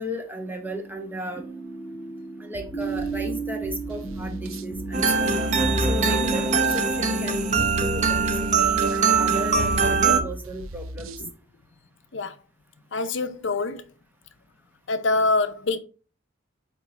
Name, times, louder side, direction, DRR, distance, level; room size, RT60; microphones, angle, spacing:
voice 1, 0.0-1.4 2.4-5.4 5.8-11.1, equal, 10° right, 1.0 m, -34 dB
sound 1, 0.6-10.3, right 4 dB, 10° left, 1.5 m, -37 dB
sound 2, 2.5-11.3, equal, 85° right, 0.6 m, -39 dB
sound 3, 4.9-10.2, right 4 dB, 35° right, 0.6 m, -22 dB
voice 2, 12.9-13.8 14.9-15.8, left 3 dB, 60° left, 0.7 m, -25 dB
8.1 x 3.1 x 4.2 m
head